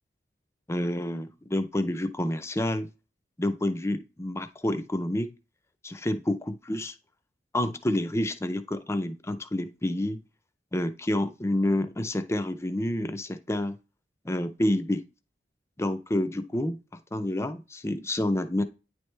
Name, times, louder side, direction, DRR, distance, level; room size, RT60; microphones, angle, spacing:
voice 1, 0.7-2.9 3.4-5.3 5.8-6.9 7.5-10.2 10.7-13.8 14.2-15.0 15.8-16.8 17.1-18.6, left 1 dB, 15° left, 0.5 m, -28 dB
9.5 x 3.3 x 3.1 m
head